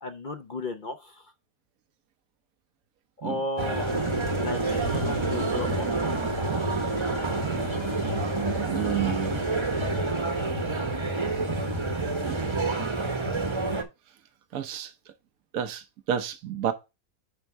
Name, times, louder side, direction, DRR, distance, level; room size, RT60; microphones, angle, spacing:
voice 1, 0.0-1.3 3.2-3.9 4.3-5.9 10.6-10.7, left 2 dB, 45° left, 0.7 m, -34 dB
sound 1, 3.6-13.8, right 3 dB, 20° right, 0.9 m, -28 dB
sound 2, 3.8-10.5, left 4 dB, 80° left, 1.7 m, -42 dB
voice 2, 8.6-9.4 12.2-12.5 14.5-15.1 15.5-16.7, right 10 dB, 75° right, 1.2 m, -30 dB
9.8 x 3.6 x 4.5 m
omnidirectional pair, 1.6 m